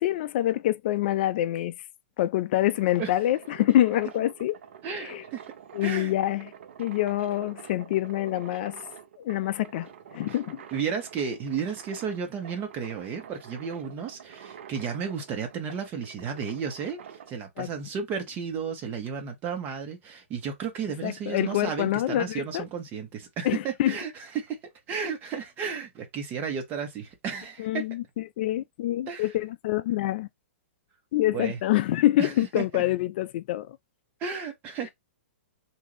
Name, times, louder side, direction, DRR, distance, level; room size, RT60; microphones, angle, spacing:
voice 1, 0.0-1.7 2.2-4.6 5.0-5.2 5.7-6.5 6.8-8.8 9.2-10.6 17.6-17.7 21.0-22.6 23.4-23.9 27.6-30.3 31.1-33.8, left 14 dB, 50° left, 0.3 m, -26 dB
sound 1, 2.5-17.3, right 8 dB, 65° right, 0.7 m, -47 dB
voice 2, 4.8-5.5 5.8-6.1 10.7-17.0 17.3-24.6 24.9-27.8 29.1-29.3 31.3-31.6 32.2-32.8 34.2-34.9, right 6 dB, 25° right, 1.3 m, -33 dB
3.7 x 2.6 x 3.2 m
hypercardioid pair, 140°, 7 cm